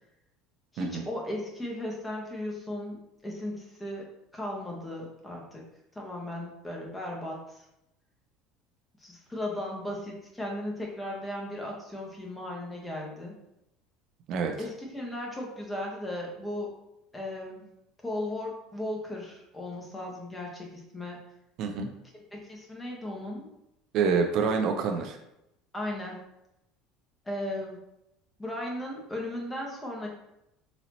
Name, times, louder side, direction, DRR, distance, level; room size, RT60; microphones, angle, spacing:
voice 1, 0.7-5.6 5.9-7.6 9.0-13.3 14.6-16.7 17.1-17.6 18.0-21.2 22.3-23.5 25.7-26.2 27.2-27.8 28.4-30.1, left 1 dB, 10° left, -2 dB, 1.2 m, -36 dB
voice 2, 21.6-21.9 23.9-25.2, right 5 dB, 60° right, 4 dB, 0.4 m, -27 dB
4.0 x 2.8 x 2.9 m, 0.85 s
supercardioid pair, 95°, 0 cm